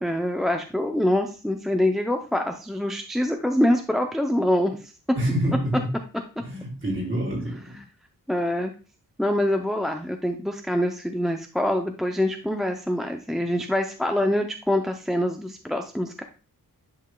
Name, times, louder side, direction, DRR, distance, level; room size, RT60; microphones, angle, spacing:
voice 1, 0.0-4.9 8.3-8.7 9.2-16.2, left 1 dB, ahead, 0.4 m, -25 dB
voice 2, 5.1-5.9 6.4-7.8, equal, 35° right, 3.1 m, -27 dB
10.5 x 5.8 x 2.2 m
wide cardioid pair, 170°, 36 cm